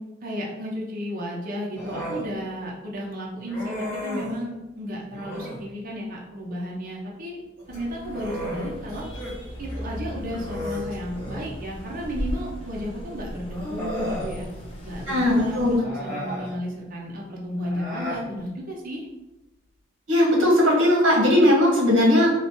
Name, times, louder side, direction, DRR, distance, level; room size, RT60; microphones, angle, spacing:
voice 1, 0.2-7.4 7.7-9.0 9.6-14.5 14.8-19.1, equal, 45° right, -3 dB, 0.7 m, -33 dB
Human voice, 1.7-2.3 3.5-4.4 5.1-5.6 7.6-9.4 9.7-9.8 10.3-11.5 12.7-12.8 13.5-14.3 15.7-16.5 17.6-18.3, equal, 5° left, 1.3 m, -34 dB
sound 1, 7.6-15.8, equal, 30° left, 0.8 m, -37 dB
voice 2, 15.1-15.8 16.2-16.3 20.1-22.3, left 1 dB, 70° right, -2 dB, 1.1 m, -18 dB
3.2 x 2.1 x 4.1 m, 1.0 s
head